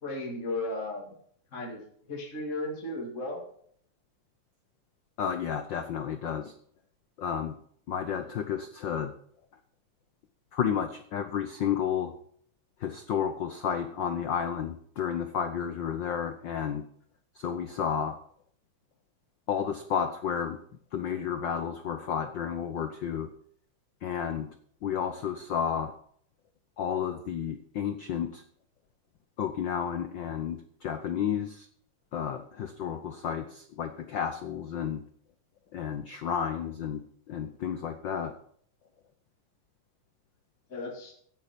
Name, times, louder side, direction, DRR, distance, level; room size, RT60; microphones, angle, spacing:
voice 1, 0.0-1.1 1.5-3.4 40.7-41.1, left 2 dB, 25° left, -1 dB, 2.5 m, -35 dB
voice 2, 5.2-6.5 7.2-7.6 7.9-9.1 10.5-12.1 12.8-16.8 17.3-18.2 19.5-20.6 20.9-23.3 24.0-24.5 24.8-25.9 26.8-28.4 29.4-31.7 32.1-35.0 35.7-38.3, left 8 dB, 75° left, 8 dB, 1.0 m, -31 dB
16.5 x 8.8 x 5.2 m, 0.63 s
omnidirectional pair, 3.3 m